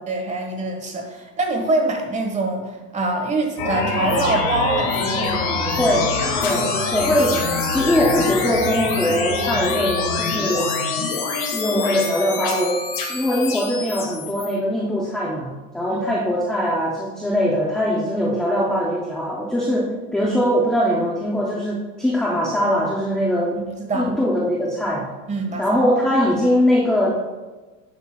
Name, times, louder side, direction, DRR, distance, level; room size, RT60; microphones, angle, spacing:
voice 1, 0.1-2.6 2.9-5.5 15.9-16.1 23.6-24.1 25.3-25.8 26.3-26.4, right 2 dB, 15° right, 3 dB, 1.2 m, -24 dB
sound 1, 3.6-14.5, left 4 dB, 50° left, 2.1 m, -24 dB
voice 2, 5.7-6.1 6.4-7.4 7.7-10.7 11.5-12.8 13.1-23.6 23.9-25.1 25.6-27.1, equal, ahead, -4 dB, 0.3 m, -21 dB
10.5 x 8.2 x 2.2 m, 1.3 s
supercardioid pair, 140°, 47 cm